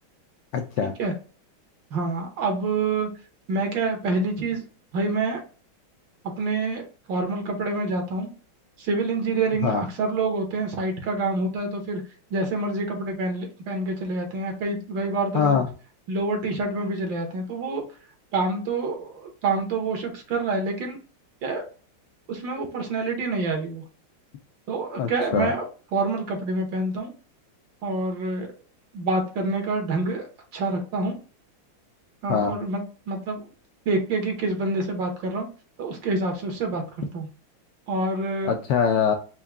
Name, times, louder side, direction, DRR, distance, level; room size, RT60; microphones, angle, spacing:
voice 1, 0.5-0.9 9.6-9.8 15.3-15.7 25.0-25.5 32.3-32.5 38.5-39.2, left 6 dB, 75° left, 4 dB, 1.0 m, -23 dB
voice 2, 1.9-3.1 3.5-4.6 4.9-5.4 6.4-6.8 7.1-8.3 8.8-12.0 12.3-15.6 16.1-17.8 18.3-21.0 21.4-21.6 22.3-23.8 24.7-25.6 25.9-27.1 27.8-28.5 28.9-30.3 30.5-31.1 32.2-33.4 33.9-35.5 35.8-37.3 37.9-38.5, right 3 dB, 65° right, 3 dB, 1.7 m, -27 dB
4.6 x 2.3 x 3.4 m, 0.37 s
omnidirectional pair, 2.3 m